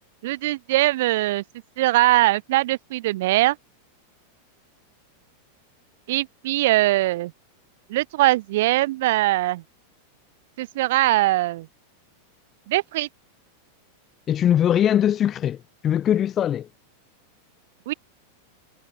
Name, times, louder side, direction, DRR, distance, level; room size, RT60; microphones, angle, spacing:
voice 1, 0.2-1.4 1.8-3.6 6.1-7.3 7.9-9.6 10.6-11.7 12.7-13.1 17.9-18.0, right 17 dB, 55° right, 1.4 m, -21 dB
voice 2, 14.3-15.6 15.8-16.7, left 10 dB, 25° left, 2.2 m, -21 dB
figure-of-eight pair, 90°, 0 cm